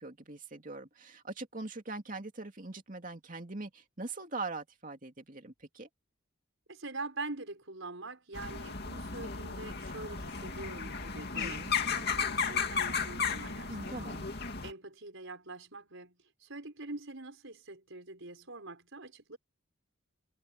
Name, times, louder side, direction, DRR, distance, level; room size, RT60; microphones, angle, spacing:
voice 1, 0.0-5.9 11.3-11.7 13.7-14.3, right 3 dB, 40° right, 2.6 m, -42 dB
voice 2, 6.7-11.7 11.9-14.1 14.6-19.4, right 3 dB, 65° right, 5.5 m, -44 dB
sound 1, 8.3-14.7, left 5 dB, 50° left, 2.5 m, -34 dB
head